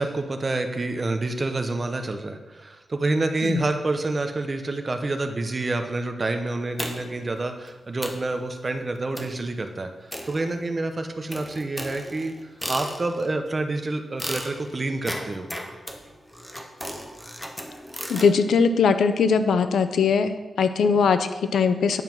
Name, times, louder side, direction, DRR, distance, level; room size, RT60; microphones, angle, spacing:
voice 1, 0.0-15.5, right 2 dB, 30° right, 6 dB, 0.9 m, -28 dB
sound 1, 6.8-7.3 7.7-7.8 8.0-8.3 9.2-9.5 10.1-10.8 11.3-13.3 14.2-18.3, equal, 5° left, 1.0 m, -35 dB
voice 2, 18.1-22.0, left 5 dB, 90° left, 10 dB, 0.6 m, -21 dB
9.2 x 5.6 x 6.1 m, 1.1 s
wide cardioid pair, 120°, 0 cm